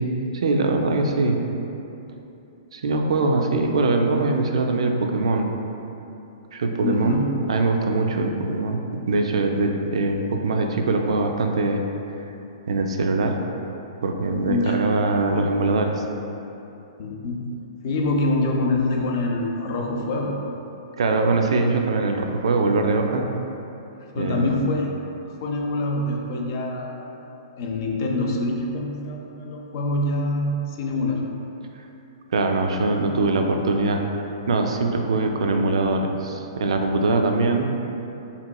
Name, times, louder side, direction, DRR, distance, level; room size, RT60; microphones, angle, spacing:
voice 1, 0.0-1.4 2.7-5.5 6.5-7.2 7.5-8.8 9.1-11.8 12.7-13.4 14.0-16.0 21.0-23.3 24.2-24.5 32.3-37.7, right 3 dB, 85° right, 3 dB, 0.3 m, -22 dB
voice 2, 6.8-7.3 14.4-14.8 17.0-17.4 17.8-20.4 24.1-27.1 27.6-31.3, left 2 dB, 35° left, 0 dB, 0.3 m, -25 dB
3.5 x 2.9 x 2.2 m, 2.8 s
hypercardioid pair, 170°, 3 cm